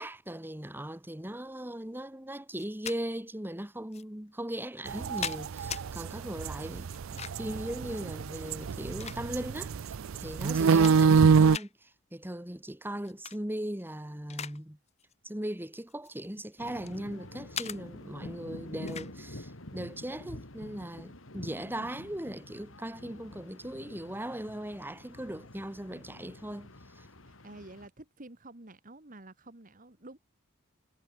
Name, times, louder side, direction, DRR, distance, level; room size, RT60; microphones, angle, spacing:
voice 1, 0.0-14.8 15.2-27.1, right 1 dB, 10° right, 1.8 m, -39 dB
sound 1, 2.5-3.0 3.9-4.0 4.8-5.8 6.9-7.5 8.5-9.6 10.1-10.2 10.6-11.2 11.5-11.7 13.0-13.4 13.8-14.6 14.9-15.1 15.9-17.0 17.5-17.8 18.9-19.1, left 8 dB, 30° left, 0.8 m, -40 dB
sound 2, 4.9-11.6, right 5 dB, 85° right, 0.5 m, -25 dB
sound 3, 16.6-27.9, left 1 dB, 80° left, 3.0 m, -47 dB
voice 2, 27.2-30.2, right 2 dB, 40° right, 2.1 m, -49 dB
head